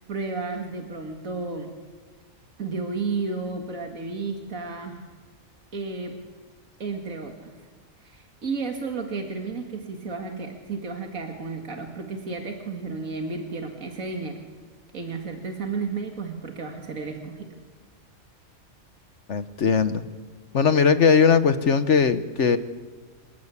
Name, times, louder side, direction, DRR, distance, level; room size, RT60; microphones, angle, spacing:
voice 1, 0.1-1.8 2.6-5.1 5.7-6.1 6.8-7.5 8.0-14.4 14.9-17.5, right 4 dB, 75° right, 3 dB, 2.4 m, -32 dB
voice 2, 19.3-20.0 20.5-22.6, left 6 dB, 60° left, 11 dB, 1.3 m, -19 dB
28.0 x 16.0 x 8.4 m, 1.5 s
omnidirectional pair, 1.4 m